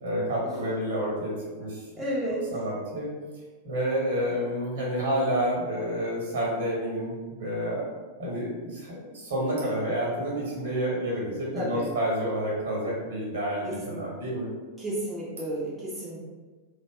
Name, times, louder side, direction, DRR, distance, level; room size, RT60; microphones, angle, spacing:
voice 1, 0.0-1.8 2.5-3.1 3.6-14.5, equal, 60° right, -5 dB, 1.0 m, -29 dB
voice 2, 2.0-2.4 11.6-11.9 13.7-14.1 14.8-16.2, right 1 dB, 10° right, -7 dB, 0.5 m, -32 dB
2.5 x 2.1 x 2.3 m, 1.3 s
figure-of-eight pair, 90°, 0 cm